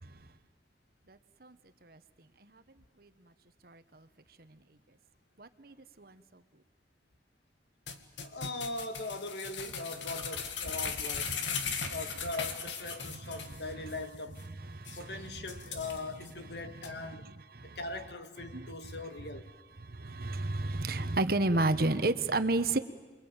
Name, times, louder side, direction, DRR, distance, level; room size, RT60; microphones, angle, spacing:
voice 1, 1.1-1.6 1.8-2.0 2.4-2.5 3.0-3.1 3.6-4.0 5.4-6.2 11.6-11.9 13.0-13.3 13.7-13.8 14.7-15.2 17.1-17.8 18.5-18.7 19.8-22.8, right 2 dB, 55° right, 1.2 m, -32 dB
sound 1, 7.9-13.6 13.9-14.0 14.4-14.5 14.9-15.0 15.5-16.3 16.8-16.9, left 6 dB, 90° left, 2.1 m, -38 dB
voice 2, 8.2-11.4 11.9-14.4 15.0-17.3 17.6-19.5, left 2 dB, 65° left, 1.9 m, -40 dB
28.5 x 23.0 x 9.0 m
head